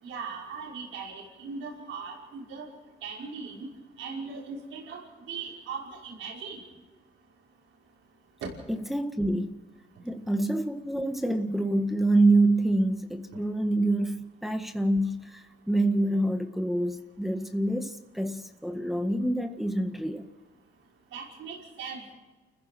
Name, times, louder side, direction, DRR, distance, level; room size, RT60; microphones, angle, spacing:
voice 1, 0.0-2.6 3.0-3.6 4.0-6.6 8.4-8.5 21.1-22.0, right 5 dB, 85° right, -2 dB, 5.7 m, -39 dB
voice 2, 8.7-9.6 10.0-20.3, right 2 dB, ahead, 5 dB, 1.7 m, -26 dB
29.5 x 15.5 x 6.2 m, 1.2 s
cardioid pair, 90°, 20 cm